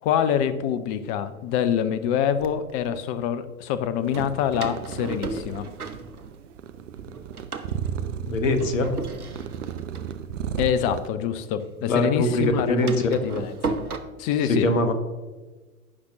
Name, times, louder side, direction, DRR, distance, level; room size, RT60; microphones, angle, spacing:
voice 1, 0.0-5.6 10.6-13.8 14.2-14.9, left 9 dB, 30° left, 12 dB, 0.6 m, -25 dB
Door, 0.9-1.0 1.8-2.9 4.1-6.7 7.0-11.5 11.7-14.0, right 3 dB, 85° right, 0.9 m, -36 dB
sound 1, 4.0-11.1, right 8 dB, 55° right, 0.7 m, -35 dB
voice 2, 8.3-8.9 11.9-12.9 14.5-14.9, left 1 dB, 60° left, 7 dB, 1.4 m, -22 dB
14.5 x 5.9 x 2.8 m, 1.3 s
figure-of-eight pair, 100°, 43 cm